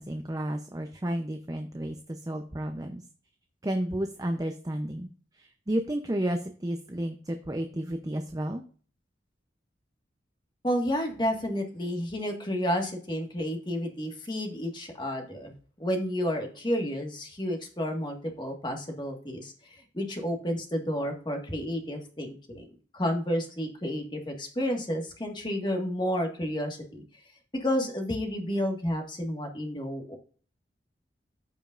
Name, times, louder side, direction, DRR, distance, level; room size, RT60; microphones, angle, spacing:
voice 1, 0.0-3.0 3.6-5.1 5.3-8.6, right 1 dB, 20° right, 6 dB, 0.6 m, -32 dB
voice 2, 10.6-22.7 22.9-27.0 27.5-30.2, equal, 25° left, 3 dB, 1.6 m, -31 dB
14.0 x 5.2 x 2.5 m, 0.42 s
head